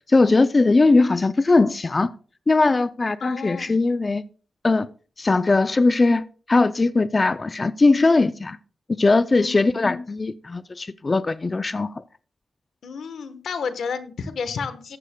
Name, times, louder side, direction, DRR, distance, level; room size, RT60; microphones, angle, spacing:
voice 1, 0.1-2.1 2.5-4.2 4.6-4.9 5.2-8.6 8.9-11.9, left 3 dB, 35° left, 0.4 m, -19 dB
voice 2, 3.2-3.7 9.4-9.7 12.8-15.0, left 5 dB, 90° left, 1.1 m, -31 dB
14.0 x 11.5 x 2.2 m
wide cardioid pair, 90°, 0 cm